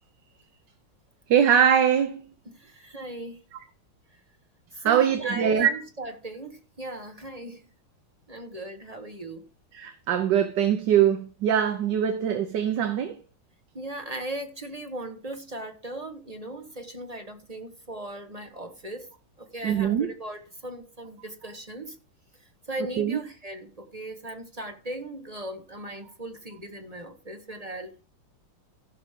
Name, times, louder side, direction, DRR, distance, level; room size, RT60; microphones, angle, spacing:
voice 1, 1.3-2.2 4.8-5.7 9.7-13.2 19.6-20.1 23.0-23.2, right 9 dB, 65° right, 1.4 m, -22 dB
voice 2, 2.5-3.4 4.7-7.6 8.3-9.5 13.7-19.1 19.4-22.0 22.7-28.0, right 1 dB, 20° right, 1.1 m, -38 dB
15.5 x 6.1 x 3.6 m
omnidirectional pair, 2.3 m